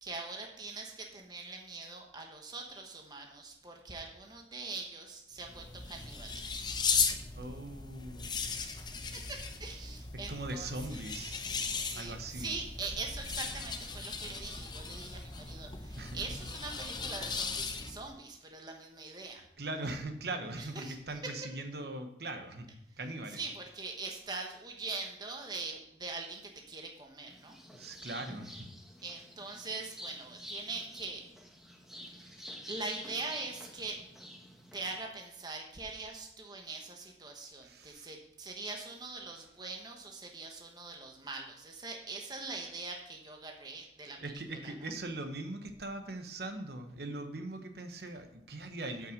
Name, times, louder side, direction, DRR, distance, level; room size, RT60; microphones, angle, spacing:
voice 1, 0.0-6.7 8.5-8.8 9.1-11.0 11.6-19.4 20.6-21.3 23.3-27.6 27.9-28.1 29.0-31.2 32.0-32.3 32.7-34.0 34.7-44.9, right 3 dB, 25° right, 2 dB, 1.2 m, -43 dB
sound 1, 5.4-18.1, left 5 dB, 25° left, 0.7 m, -37 dB
voice 2, 7.3-8.3 10.3-11.4 12.0-12.5 16.0-16.2 19.3-23.4 27.8-28.7 37.6-38.1 44.2-49.1, right 2 dB, 60° right, 7 dB, 1.0 m, -41 dB
sound 2, 27.3-35.0, equal, ahead, 1.0 m, -48 dB
8.7 x 5.7 x 6.6 m, 0.82 s
head